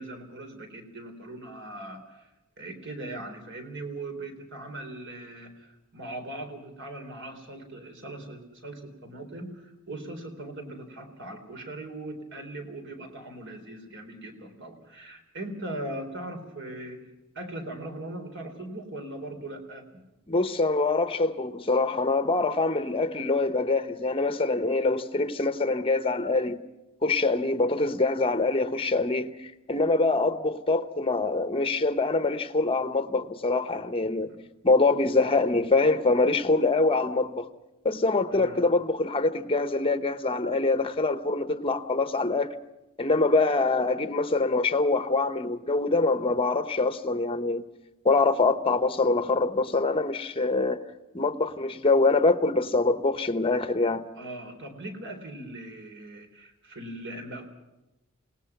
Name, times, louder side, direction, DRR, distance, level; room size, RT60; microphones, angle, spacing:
voice 1, 0.0-2.3 2.6-17.0 17.4-19.9 34.3-34.4 38.3-38.6 54.2-57.5, right 1 dB, 55° right, 3.8 m, -40 dB
voice 2, 20.3-26.6 27.0-34.3 34.6-37.5 37.8-42.5 43.0-47.6 48.0-50.8 51.1-54.0, left 3 dB, 25° left, 1.0 m, -24 dB
28.5 x 18.5 x 6.0 m
head